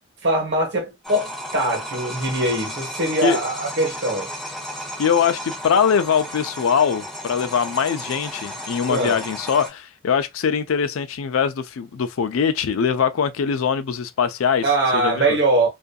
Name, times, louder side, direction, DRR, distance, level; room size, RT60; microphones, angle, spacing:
voice 1, 0.2-4.3 8.9-9.2 14.6-15.7, right 2 dB, 55° right, 1.1 m, -22 dB
sound 1, 1.0-9.7, equal, ahead, 1.3 m, -34 dB
voice 2, 5.0-14.6 14.9-15.4, left 7 dB, 80° left, 0.4 m, -22 dB
2.6 x 2.5 x 2.2 m
head